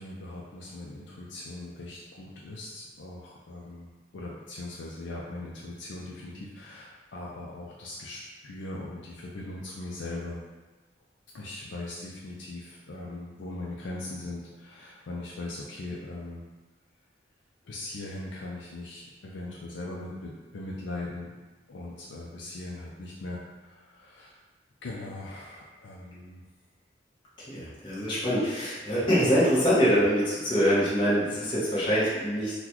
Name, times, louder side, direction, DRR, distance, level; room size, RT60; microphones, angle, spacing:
voice 1, 0.0-10.4 11.3-16.4 17.7-21.3 21.7-24.3 24.8-26.4 31.3-31.4, left 2 dB, 80° left, -4 dB, 0.4 m, -40 dB
voice 2, 27.5-32.6, equal, 25° left, -9 dB, 0.9 m, -24 dB
3.9 x 2.2 x 2.9 m, 1.2 s
head